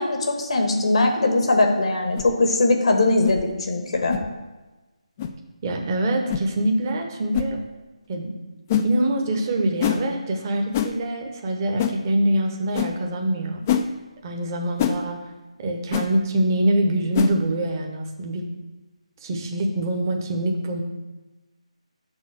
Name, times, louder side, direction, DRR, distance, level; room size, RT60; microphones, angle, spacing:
voice 1, 0.0-4.2, left 2 dB, 60° left, 3 dB, 1.3 m, -20 dB
sound 1, 2.1-2.3 3.2-3.4 4.1-4.3 5.2-5.3 6.3-6.5 7.3-7.5 8.7-8.9 9.8-10.0 10.7-10.9 11.8-12.0 12.7-12.9 13.7-13.9 14.8-15.0 15.9-16.1 17.1-17.3, left 9 dB, 25° left, 0.4 m, -24 dB
voice 2, 5.6-7.6 8.1-8.3 8.8-13.6 14.2-15.2 15.6-18.5 19.2-20.8, right 1 dB, 30° right, 3 dB, 1.0 m, -24 dB
6.4 x 4.0 x 6.3 m, 1.2 s
figure-of-eight pair, 155°, 4 cm